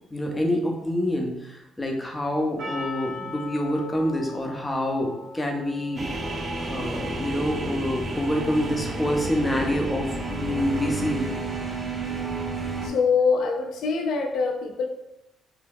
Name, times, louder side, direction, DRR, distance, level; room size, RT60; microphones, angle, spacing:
voice 1, 0.1-6.1 6.7-11.3, left 1 dB, 15° left, 1 dB, 0.6 m, -27 dB
Percussion, 2.6-7.1, left 3 dB, 70° right, 0.6 m, -40 dB
sound 1, 6.0-12.9, right 2 dB, 25° right, 0.5 m, -31 dB
voice 2, 12.8-14.9, left 5 dB, 75° left, 2 dB, 0.4 m, -24 dB
2.8 x 2.2 x 3.4 m, 0.86 s
cardioid pair, 90°, 0 cm